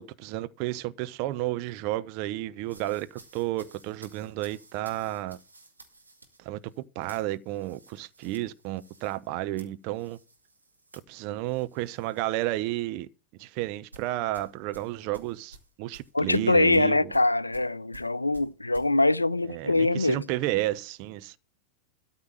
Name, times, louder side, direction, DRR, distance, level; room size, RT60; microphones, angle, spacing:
voice 1, 0.0-5.4 6.4-6.6 6.9-10.2 11.1-13.1 13.4-17.1 19.4-21.4, right 16 dB, 45° right, 0.8 m, -32 dB
sound 1, 2.6-12.3 12.6-12.9 13.9-18.9, right 3 dB, 85° right, 2.4 m, -54 dB
voice 2, 16.1-20.2, left 2 dB, 85° left, 0.5 m, -23 dB
13.0 x 5.8 x 8.8 m
figure-of-eight pair, 90°, 0 cm